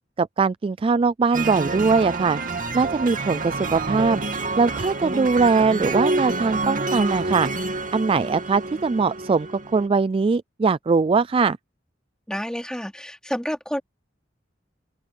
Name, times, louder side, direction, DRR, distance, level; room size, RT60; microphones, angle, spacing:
voice 1, 0.2-2.4 2.7-4.2 4.6-7.5 7.9-11.6, right 4 dB, 30° right, 0.3 m, -21 dB
sound 1, 1.3-9.9, right 3 dB, 45° right, 2.7 m, -28 dB
voice 2, 12.3-13.8, equal, 5° left, 3.8 m, -29 dB
open air
head